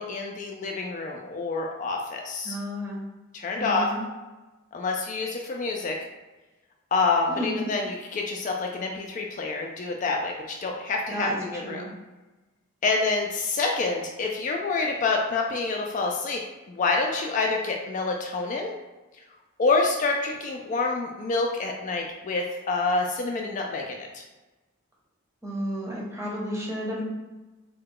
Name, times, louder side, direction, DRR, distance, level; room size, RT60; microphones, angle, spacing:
voice 1, 0.0-2.5 3.3-3.9 4.7-6.0 6.9-10.3 10.6-11.8 12.8-16.4 16.7-18.7 19.6-24.2, left 3 dB, 40° left, 1 dB, 0.3 m, -27 dB
voice 2, 2.4-3.0 3.6-4.0 7.4-7.7 11.1-11.4 11.6-11.9 25.4-27.0, equal, 15° right, -4 dB, 0.8 m, -32 dB
3.7 x 2.2 x 3.7 m, 1.1 s
head